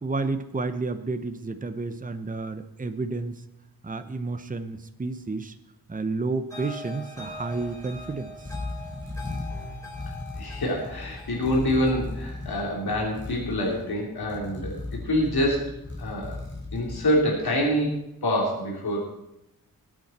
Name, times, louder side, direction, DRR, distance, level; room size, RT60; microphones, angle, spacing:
voice 1, 0.0-3.4 3.8-5.5 5.9-8.3, right 3 dB, 20° right, 9 dB, 0.9 m, -31 dB
sound 1, 6.5-13.6, left 2 dB, 10° left, 5.0 m, -43 dB
sound 2, 7.1-17.7, left 2 dB, 30° left, 4.7 m, -37 dB
voice 2, 10.4-16.3 16.7-19.1, equal, 85° left, -2 dB, 3.1 m, -26 dB
19.5 x 8.8 x 4.3 m, 0.87 s
wide cardioid pair, 95°, 37 cm